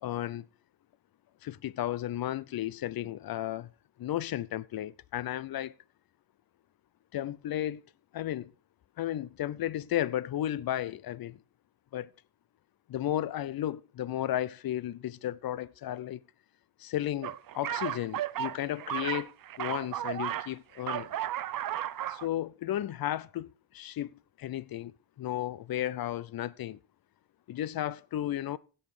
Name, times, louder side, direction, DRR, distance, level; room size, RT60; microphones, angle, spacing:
voice 1, 0.0-0.5 1.4-3.7 4.0-5.7 7.1-7.8 8.1-8.5 9.0-11.4 11.9-12.1 12.9-16.2 16.8-19.3 19.6-21.1 22.1-24.9 25.2-26.8 27.5-28.6, left 12 dB, 50° left, 0.6 m, -34 dB
sound 1, 17.2-20.5 20.8-22.3, right 12 dB, 45° right, 0.6 m, -34 dB
16.0 x 5.6 x 4.9 m
cardioid pair, 85°, 46 cm